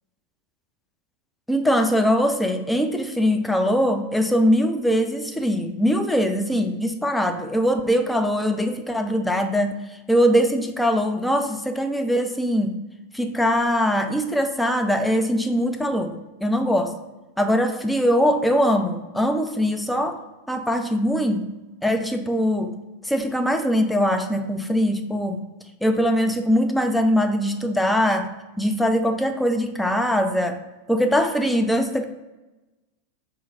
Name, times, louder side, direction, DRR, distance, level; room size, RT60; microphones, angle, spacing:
voice 1, 1.5-9.8 10.1-12.8 13.1-16.1 16.4-16.9 17.4-20.2 20.5-21.5 21.8-22.8 23.0-25.4 25.8-30.6 30.9-32.0, equal, 5° left, 6 dB, 0.3 m, -22 dB
4.2 x 2.3 x 2.7 m, 1.1 s
figure-of-eight pair, 90°, 0 cm